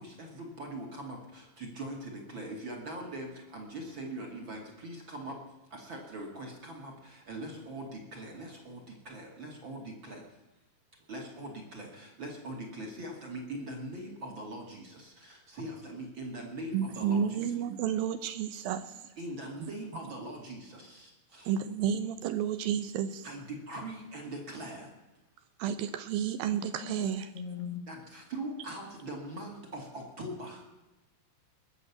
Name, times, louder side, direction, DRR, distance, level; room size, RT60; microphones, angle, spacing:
voice 1, 0.0-5.4 5.7-10.2 11.1-17.5 19.2-21.5 23.2-24.9 27.9-30.6, right 1 dB, 35° right, 1 dB, 2.7 m, -42 dB
voice 2, 16.7-19.0 21.5-23.3 25.6-27.3, right 8 dB, 75° right, 11 dB, 2.3 m, -31 dB
voice 3, 26.6-27.9, left 7 dB, 85° left, 7 dB, 3.6 m, -41 dB
20.5 x 6.9 x 8.6 m, 1.1 s
omnidirectional pair, 4.5 m